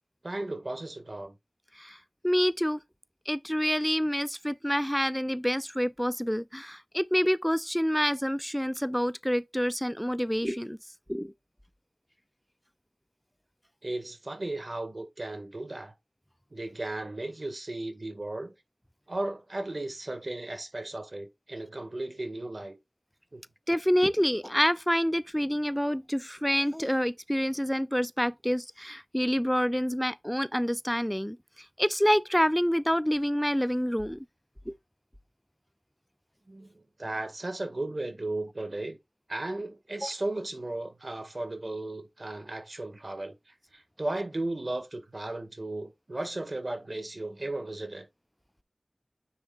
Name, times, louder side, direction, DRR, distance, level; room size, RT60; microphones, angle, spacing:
voice 1, 0.2-1.4 13.8-15.9 16.5-18.5 19.1-22.8 23.3-23.4 36.5-39.0 39.3-43.3 43.7-48.1, right 2 dB, 60° right, 1.9 m, -35 dB
voice 2, 2.2-2.8 3.3-10.8 11.1-11.3 23.7-31.4 31.8-34.3 34.7-34.8 40.0-40.1, equal, 5° left, 0.5 m, -27 dB
9.5 x 3.2 x 4.1 m
wide cardioid pair, 40°, 0 cm